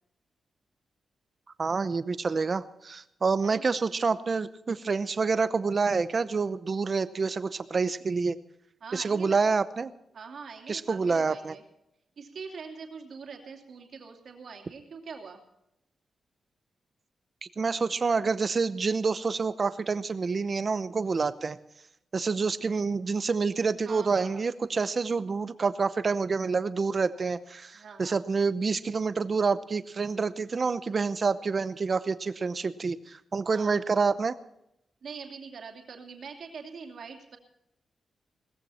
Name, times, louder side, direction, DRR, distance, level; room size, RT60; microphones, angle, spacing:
voice 1, 1.6-8.4 8.9-9.9 10.7-11.5 17.6-21.6 22.1-34.4, right 4 dB, 30° right, 14 dB, 0.7 m, -27 dB
voice 2, 8.8-9.5 10.1-11.6 12.2-15.4 21.0-21.2 23.8-24.5 27.7-28.2 33.5-33.8 35.0-37.4, right 5 dB, 55° right, 3 dB, 2.7 m, -43 dB
19.0 x 14.5 x 4.3 m, 0.80 s
wide cardioid pair, 175°, 0 cm